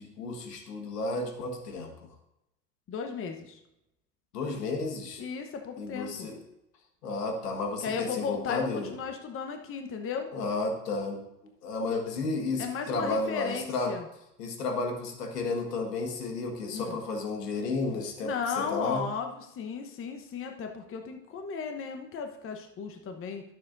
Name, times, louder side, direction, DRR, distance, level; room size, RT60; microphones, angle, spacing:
voice 1, 0.0-1.9 4.3-5.2 5.8-6.4 7.0-8.9 10.3-11.2 11.6-13.9 14.4-19.1, left 3 dB, 85° left, 3 dB, 1.7 m, -32 dB
voice 2, 2.9-3.6 5.2-6.3 7.8-10.3 12.6-14.1 16.7-17.0 18.2-23.4, left 6 dB, 30° left, 5 dB, 1.0 m, -35 dB
12.5 x 7.2 x 2.6 m, 0.86 s
hypercardioid pair, 100°, 46 cm